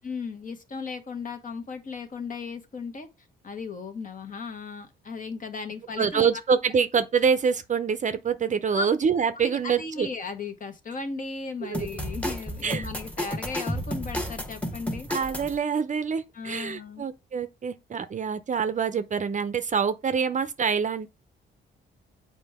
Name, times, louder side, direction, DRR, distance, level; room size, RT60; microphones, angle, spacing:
voice 1, 0.0-6.3 8.7-8.9 9.3-15.1 16.3-17.1, left 4 dB, 40° left, 1.3 m, -36 dB
voice 2, 6.0-10.1 11.7-11.9 12.6-12.9 15.1-21.1, right 6 dB, 40° right, 0.6 m, -26 dB
sound 1, 11.7-15.6, equal, 5° left, 1.2 m, -32 dB
7.3 x 4.5 x 3.5 m
cardioid pair, 90°, 20 cm